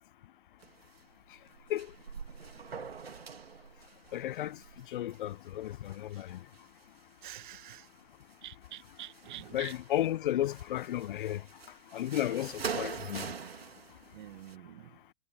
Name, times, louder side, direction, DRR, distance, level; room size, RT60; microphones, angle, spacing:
sound 1, 0.6-1.1 1.3-6.8 7.4-8.3 8.6-10.1 10.4-14.5, right 6 dB, 85° right, 3.0 m, -44 dB
voice 1, 4.1-4.6 4.9-6.4 9.5-11.4 11.9-13.3, left 13 dB, 60° left, 1.0 m, -33 dB
voice 2, 7.2-7.9 8.4-9.7 12.3-12.4 14.1-14.9, right 15 dB, 55° right, 2.2 m, -47 dB
hypercardioid pair, 115°, 29 cm